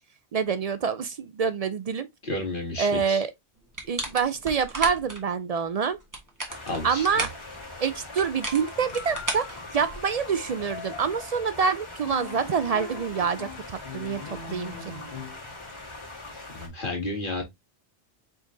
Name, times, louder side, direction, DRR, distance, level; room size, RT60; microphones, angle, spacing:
voice 1, 0.3-2.1 2.8-3.3 3.9-6.0 6.8-7.3 7.8-14.9, right 6 dB, 55° right, 0.4 m, -26 dB
voice 2, 2.2-3.3 6.7-7.3 16.5-17.4, left 2 dB, 50° left, 2.0 m, -32 dB
sound 1, 3.7-5.2 6.0-7.4 8.2-10.2, right 1 dB, 20° right, 1.3 m, -34 dB
sound 2, 6.5-16.7, left 2 dB, 25° left, 1.7 m, -42 dB
sound 3, 8.5-15.5, left 3 dB, 70° left, 2.1 m, -42 dB
5.1 x 3.8 x 2.6 m
omnidirectional pair, 1.1 m